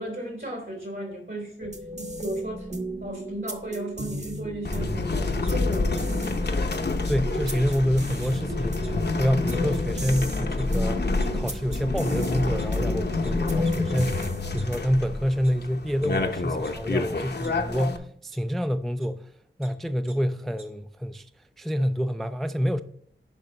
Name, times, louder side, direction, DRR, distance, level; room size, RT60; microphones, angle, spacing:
voice 1, 0.0-1.7 2.2-2.7 3.0-6.1, right 1 dB, 65° right, 3.4 m, -35 dB
sound 1, 1.6-15.1, equal, 35° right, 1.1 m, -35 dB
sound 2, 4.6-18.0, left 3 dB, 55° left, 0.7 m, -28 dB
sound 3, 5.4-6.0 6.4-6.5 7.0-7.1 7.7-7.8 8.1-8.4 8.8-8.9 9.5-9.6 10.0-10.1 10.6-10.7 11.2-11.3 11.7-11.8 12.4-13.3 13.9-14.0 14.3-15.0 15.4-15.5 16.0-16.1 16.6-17.5 18.3-18.4 19.0-19.1 19.4-19.7 20.1-20.2 20.4-20.7, right 3 dB, 85° right, 1.2 m, -51 dB
voice 2, 7.1-14.3 14.5-19.3 19.6-21.3 21.6-22.8, equal, ahead, 0.3 m, -27 dB
10.5 x 4.9 x 3.2 m
wide cardioid pair, 65°, 21 cm